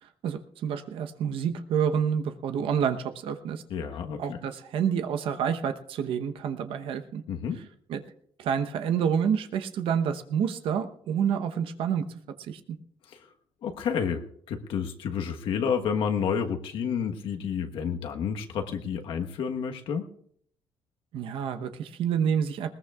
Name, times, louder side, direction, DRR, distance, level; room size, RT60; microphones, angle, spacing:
voice 1, 0.2-3.6 4.2-7.2 7.9-8.0 8.4-12.0 12.4-12.8 21.1-22.7, right 7 dB, 80° right, 7 dB, 0.9 m, -28 dB
voice 2, 3.7-4.4 7.3-7.6 13.1-13.2 13.6-20.1, left 7 dB, 75° left, 4 dB, 1.3 m, -30 dB
20.5 x 19.0 x 2.4 m, 0.64 s
cardioid pair, 140°, 9 cm